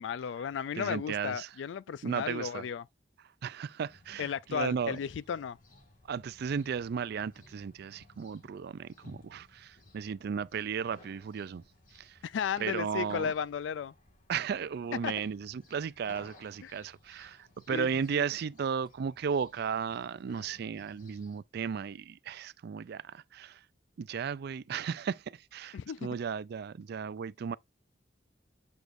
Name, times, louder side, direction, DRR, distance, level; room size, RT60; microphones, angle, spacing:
voice 1, 0.0-2.9 4.2-5.6 12.2-13.9 15.0-15.1 16.6-16.8 17.7-18.3 25.7-26.2, left 7 dB, 75° left, 0.3 m, -35 dB
voice 2, 0.8-1.5 2.0-2.6 3.4-5.0 6.1-11.6 11.9-12.2 12.6-13.3 14.3-23.6 24.0-27.6, right 6 dB, 60° right, 0.4 m, -35 dB
sound 1, 3.8-21.4, left 1 dB, 50° left, 2.0 m, -58 dB
7.7 x 5.0 x 2.6 m
head